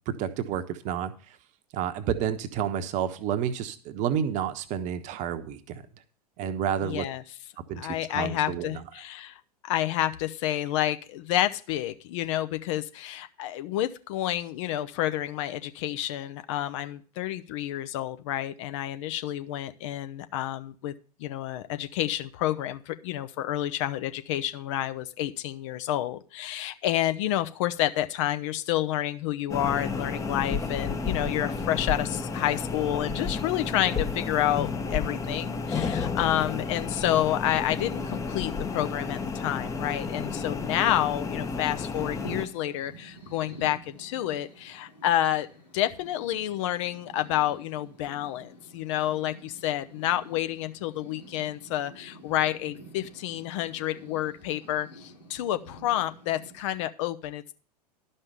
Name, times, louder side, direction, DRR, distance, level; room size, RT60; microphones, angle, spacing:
voice 1, 0.1-1.1 1.7-5.8 6.4-7.1 7.7-8.8, right 9 dB, 35° right, 11 dB, 1.0 m, -30 dB
voice 2, 6.8-7.2 7.8-20.9 21.2-45.5 45.7-57.5, left 13 dB, 50° left, 10 dB, 0.8 m, -29 dB
sound 1, 29.5-42.5, left 4 dB, 15° left, 0.9 m, -32 dB
sound 2, 38.0-56.5, right 1 dB, 85° left, 3.9 m, -50 dB
12.0 x 5.5 x 7.0 m, 0.40 s
figure-of-eight pair, 90°, 21 cm